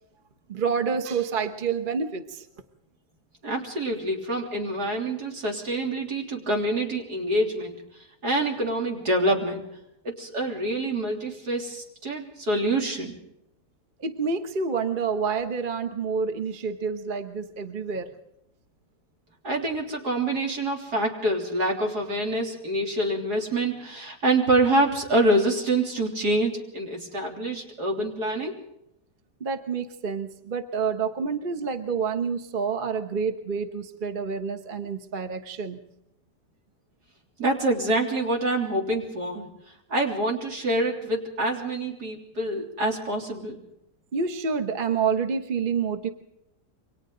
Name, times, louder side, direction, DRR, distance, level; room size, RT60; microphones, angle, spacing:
voice 1, 0.5-2.5 14.0-18.1 29.4-35.8 44.1-46.1, right 5 dB, 35° right, 7 dB, 1.2 m, -28 dB
voice 2, 3.4-7.8 8.2-9.6 10.0-13.2 19.4-28.6 37.4-39.5 39.9-43.6, right 1 dB, 70° right, 1 dB, 3.9 m, -26 dB
28.0 x 23.5 x 3.9 m, 0.80 s
omnidirectional pair, 1.8 m